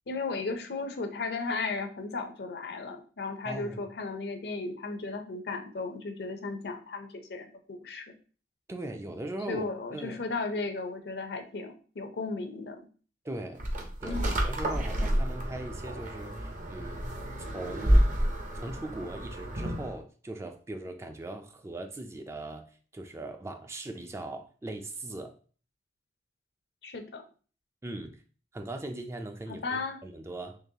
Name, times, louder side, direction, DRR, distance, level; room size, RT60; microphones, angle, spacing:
voice 1, 0.1-8.1 9.5-12.8 14.1-14.3 26.8-27.2 29.5-30.0, left 3 dB, 65° left, 6 dB, 0.5 m, -35 dB
voice 2, 3.4-3.8 8.7-9.6 9.9-10.2 13.2-13.6 14.0-17.1 17.5-18.1 18.5-25.3 27.8-28.2 28.5-30.6, right 1 dB, 15° right, 6 dB, 0.3 m, -39 dB
sound 1, 13.6-20.0, equal, 45° right, 0.6 m, -29 dB
3.9 x 3.0 x 2.7 m, 0.39 s
head